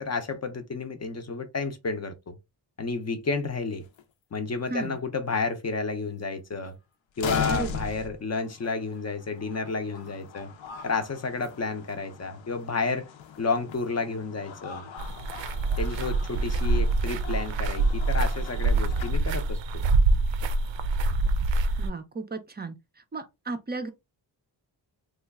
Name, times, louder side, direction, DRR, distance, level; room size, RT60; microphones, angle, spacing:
voice 1, 0.0-2.3 2.8-3.8 4.3-6.7 7.2-10.5 10.8-13.1 13.4-14.9 15.8-19.8, left 4 dB, 35° left, 0.5 m, -31 dB
sound 1, 3.8-4.0 5.0-5.1 5.3-5.4 6.7-6.8 7.2-19.1, left 7 dB, 80° left, 0.6 m, -39 dB
voice 2, 7.5-7.8 21.8-22.7 23.1-23.9, right 3 dB, 25° right, 0.4 m, -34 dB
sound 2, 15.0-21.9, right 3 dB, 80° right, 0.5 m, -25 dB
3.1 x 2.2 x 3.4 m
wide cardioid pair, 165°, 44 cm